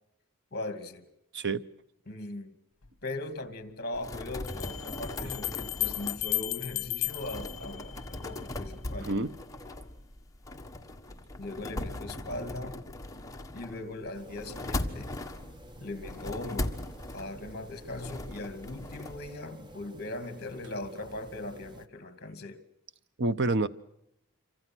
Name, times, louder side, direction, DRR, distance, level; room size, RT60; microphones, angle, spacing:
voice 1, 0.5-1.1 2.1-2.6 3.0-9.1 11.4-12.8 13.5-15.1 15.8-16.8 17.1-22.6, left 2 dB, 45° left, 2.4 m, -39 dB
sound 1, 2.8-2.9 4.5-8.4, left 21 dB, 65° left, 1.1 m, -35 dB
sound 2, 3.9-19.3, left 1 dB, 15° left, 1.4 m, -39 dB
voice 2, 9.0-9.3 23.2-23.7, right 3 dB, 55° right, 0.9 m, -28 dB
sound 3, 14.1-21.9, right 1 dB, 20° right, 1.0 m, -51 dB
27.0 x 25.0 x 6.2 m
head